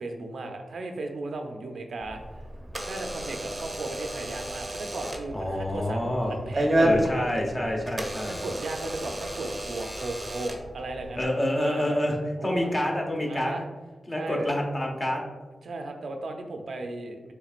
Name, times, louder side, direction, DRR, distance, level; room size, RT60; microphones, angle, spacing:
voice 1, 0.0-2.4 2.8-6.0 6.3-7.2 8.2-11.3 11.6-12.0 12.4-12.8 13.3-13.6 14.1-14.5 15.6-17.3, right 2 dB, 80° right, 4 dB, 0.5 m, -36 dB
Door / Alarm, 2.0-11.2, right 1 dB, 30° right, 0.7 m, -31 dB
voice 2, 5.3-6.4 6.8-8.4 11.2-13.5 14.1-15.2, left 1 dB, 30° left, 0 dB, 1.0 m, -27 dB
5.8 x 3.6 x 2.5 m, 1.2 s
cardioid pair, 65°, 0 cm